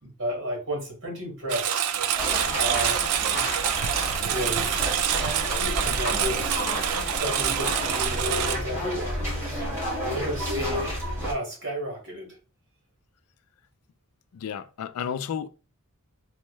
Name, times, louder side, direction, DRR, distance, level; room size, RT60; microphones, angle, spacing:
voice 1, 0.0-1.9 2.5-3.1 4.2-4.9 5.8-6.5 7.1-9.7 10.1-11.0 11.2-12.4, equal, 55° right, 1.7 m, -32 dB
Engine, 1.5-8.6, right 10 dB, 90° right, 0.4 m, -26 dB
sound 1, 2.1-11.3, equal, 10° right, 1.7 m, -30 dB
voice 2, 14.3-15.5, left 8 dB, 75° left, 0.3 m, -32 dB
4.3 x 2.3 x 3.0 m
head